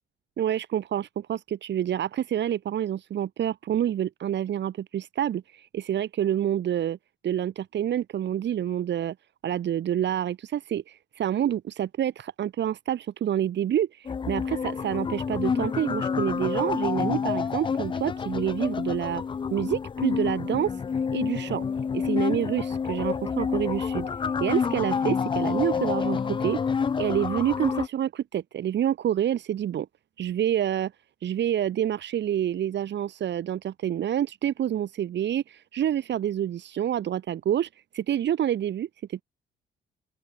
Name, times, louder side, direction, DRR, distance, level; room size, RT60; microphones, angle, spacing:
voice 1, 0.4-7.0 7.2-9.1 9.4-19.2 19.5-20.8 21.1-21.6 21.9-24.1 24.4-26.6 27.0-29.9 30.2-30.9 31.2-39.2, right 10 dB, 60° right, 1.5 m, -28 dB
sound 1, 14.0-27.9, left 6 dB, 25° left, 0.4 m, -28 dB
open air
cardioid pair, 90°, 20 cm